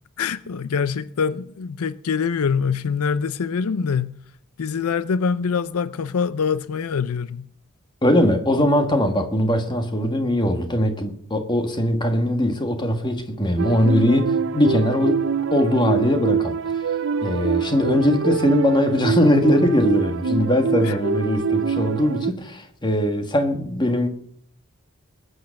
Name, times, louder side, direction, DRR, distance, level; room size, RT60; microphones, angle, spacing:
voice 1, 0.2-4.2 4.6-7.5 20.8-21.0, left 6 dB, 75° left, 0.5 m, -24 dB
voice 2, 8.0-15.2 15.5-16.9 17.2-24.1, equal, 20° left, 1.6 m, -20 dB
sound 1, 13.6-22.3, right 5 dB, 55° right, 0.6 m, -25 dB
20.0 x 8.1 x 6.4 m
head